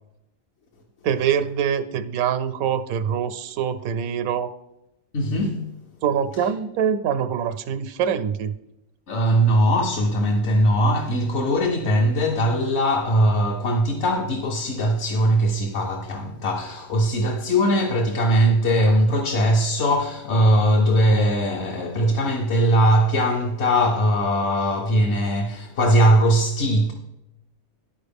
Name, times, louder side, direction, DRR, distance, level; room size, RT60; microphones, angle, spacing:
voice 1, 1.0-4.5 6.0-8.5, right 8 dB, 85° right, 1.0 m, -24 dB
voice 2, 5.1-5.7 6.4-6.5 9.1-26.9, equal, 60° left, 1.1 m, -20 dB
12.5 x 4.5 x 3.4 m
omnidirectional pair, 1.4 m